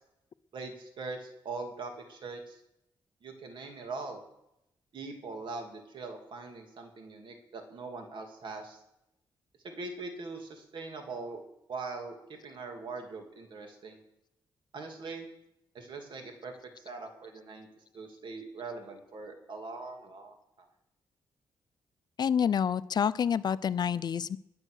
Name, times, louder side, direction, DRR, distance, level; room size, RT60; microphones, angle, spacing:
voice 1, 0.5-2.6 3.2-4.2 4.9-8.8 9.6-11.4 11.7-12.2 12.4-14.0 14.7-15.3 15.7-17.7 17.9-20.7, right 3 dB, 65° right, 4 dB, 2.9 m, -42 dB
voice 2, 22.2-24.4, left 7 dB, 50° left, 16 dB, 0.5 m, -28 dB
21.0 x 7.7 x 6.5 m, 0.83 s
cardioid pair, 95°, 9 cm